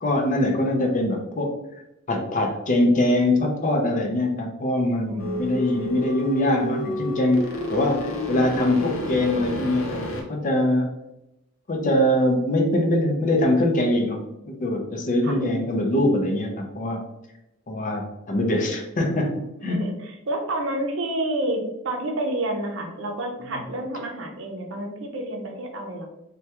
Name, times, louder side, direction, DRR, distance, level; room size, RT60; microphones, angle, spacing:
voice 1, 0.0-1.5 2.1-11.0 11.7-17.0 17.7-19.8, left 1 dB, 40° left, 2 dB, 0.5 m, -23 dB
voice 2, 5.1-5.9 15.2-15.4 19.6-26.1, right 1 dB, 65° right, 3 dB, 0.6 m, -29 dB
sound 1, 5.2-10.2, left 1 dB, 90° left, 0.6 m, -30 dB
3.3 x 2.2 x 2.8 m, 0.89 s
head